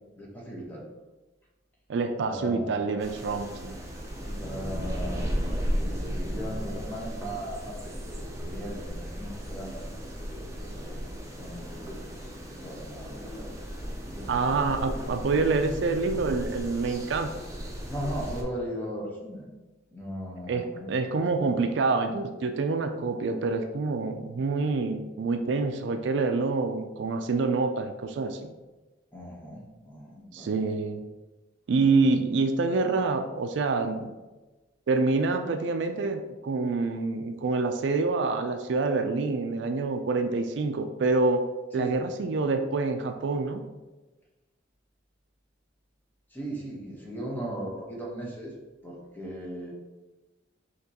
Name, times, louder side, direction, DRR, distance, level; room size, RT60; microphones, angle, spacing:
voice 1, 0.2-0.9 2.2-2.8 4.2-5.4 5.8-9.9 10.2-12.0 12.5-13.7 14.1-14.3 17.9-19.5 19.9-21.5 29.1-30.8 31.8-32.1 41.7-42.1 46.3-48.5 48.8-49.7, equal, 10° left, -4 dB, 1.0 m, -38 dB
voice 2, 1.9-3.8 14.3-17.3 20.5-28.4 30.3-31.0 31.7-34.1 34.9-41.4 41.7-43.6, right 3 dB, 65° right, 7 dB, 0.4 m, -27 dB
sound 1, 3.0-18.4, equal, 15° right, 0.7 m, -35 dB
5.7 x 2.9 x 2.8 m, 1.1 s
head